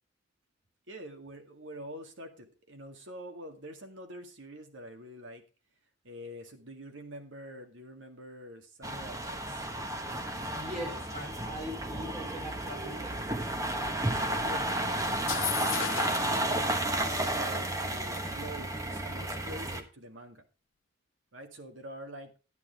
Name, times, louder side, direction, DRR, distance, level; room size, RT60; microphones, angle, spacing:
voice 1, 0.9-5.4 6.0-9.7 14.4-16.8 17.3-20.4 21.3-22.3, equal, 85° right, 5 dB, 2.1 m, -46 dB
sound 1, 8.8-19.8, right 1 dB, 20° right, 1.2 m, -32 dB
voice 2, 10.5-13.2, equal, 40° right, 1 dB, 4.6 m, -41 dB
sound 2, 15.1-16.3, left 14 dB, 85° left, 0.4 m, -35 dB
11.5 x 9.6 x 3.5 m, 0.33 s
head